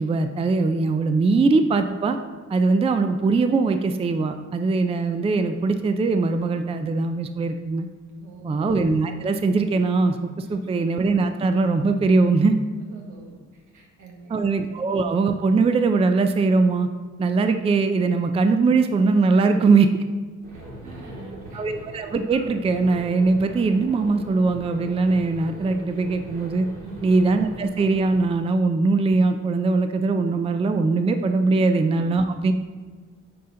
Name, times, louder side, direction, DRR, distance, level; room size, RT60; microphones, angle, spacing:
voice 1, 0.0-2.2 2.5-7.9 8.4-12.5 14.3-16.9 17.2-19.9 21.5-26.7 27.0-32.5, right 3 dB, 20° right, 8 dB, 0.4 m, -21 dB
voice 2, 8.1-8.6 10.4-10.6 12.8-14.5 20.5-21.6 26.8-27.0 32.0-32.1, right 3 dB, 75° right, 0 dB, 1.6 m, -44 dB
sound 1, 20.4-28.3, right 1 dB, 50° right, 1.9 m, -41 dB
9.2 x 4.3 x 3.8 m, 1.5 s
cardioid pair, 90°, 30 cm